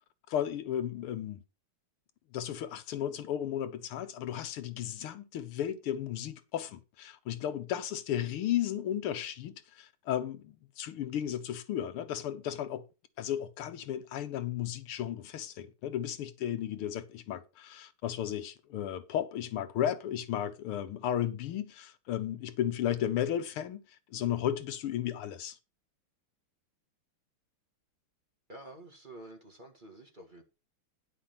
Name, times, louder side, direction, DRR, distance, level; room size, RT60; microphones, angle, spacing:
voice 1, 0.3-1.4 2.3-12.8 13.2-23.8 24.1-25.6, left 10 dB, 85° left, 1.8 m, -34 dB
voice 2, 28.5-30.4, right 1 dB, 25° right, 1.7 m, -49 dB
10.0 x 5.5 x 5.8 m
omnidirectional pair, 2.4 m